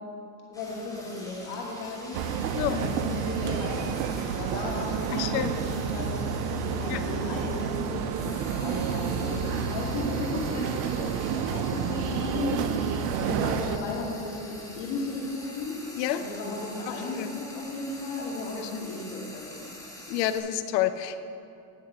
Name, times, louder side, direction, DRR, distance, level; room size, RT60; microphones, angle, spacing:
voice 1, 0.5-2.2 2.6-12.6 13.1-15.8 16.1-19.7, left 3 dB, 65° left, -2 dB, 2.5 m, -35 dB
Frying (food), 0.5-20.4, left 1 dB, 5° left, 2.6 m, -46 dB
sound 1, 2.1-13.8, right 7 dB, 75° right, 0.7 m, -30 dB
voice 2, 5.1-5.5 6.9-7.0 16.0-16.2 17.2-17.4 18.6-18.9 20.1-21.2, left 12 dB, 85° left, 11 dB, 0.7 m, -29 dB
9.8 x 7.1 x 6.3 m, 2.6 s
supercardioid pair, 85°, 48 cm